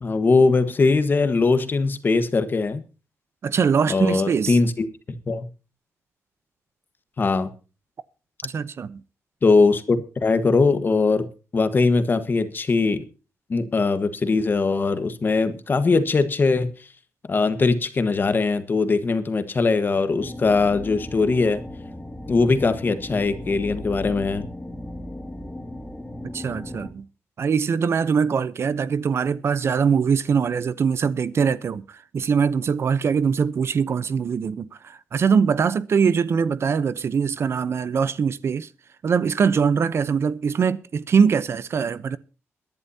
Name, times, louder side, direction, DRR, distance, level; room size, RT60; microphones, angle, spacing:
voice 1, 0.0-2.8 3.9-4.9 5.3-5.5 7.2-7.5 9.4-11.3 11.5-13.0 13.5-16.7 17.3-21.6 22.3-24.5, left 4 dB, 40° left, 1.3 m, -21 dB
voice 2, 3.4-4.6 8.4-9.0 26.3-27.0 27.4-38.7 39.0-42.2, right 6 dB, 55° right, 0.7 m, -22 dB
sound 1, 20.2-26.9, left 1 dB, 10° left, 2.2 m, -36 dB
22.5 x 10.5 x 2.8 m
cardioid pair, 110°, 5 cm